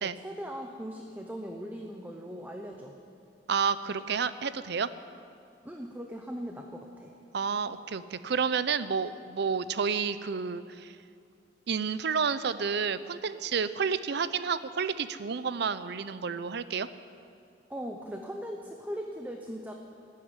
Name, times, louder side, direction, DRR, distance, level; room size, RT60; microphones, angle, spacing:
voice 1, 0.0-3.0 5.6-7.1 17.7-19.7, equal, 10° right, 2 dB, 0.8 m, -39 dB
voice 2, 3.5-4.9 7.3-11.0 11.7-16.9, right 6 dB, 65° right, 14 dB, 0.6 m, -30 dB
13.5 x 9.3 x 9.6 m, 2.4 s
head